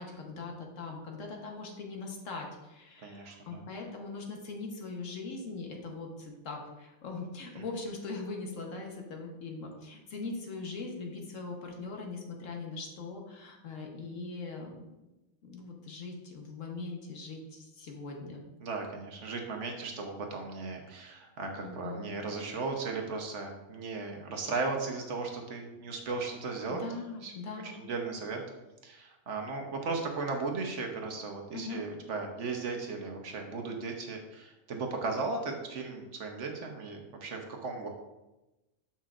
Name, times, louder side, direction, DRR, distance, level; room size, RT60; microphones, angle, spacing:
voice 1, 0.0-14.9 15.4-18.4 21.6-22.1 26.7-27.7 31.5-31.8, left 3 dB, 70° left, 1 dB, 1.4 m, -41 dB
voice 2, 3.0-3.6 7.6-7.7 18.6-26.8 27.2-27.3 27.6-28.4 28.8-37.9, right 4 dB, 65° right, 2 dB, 1.2 m, -36 dB
7.5 x 5.8 x 2.4 m, 1.0 s
omnidirectional pair, 1.4 m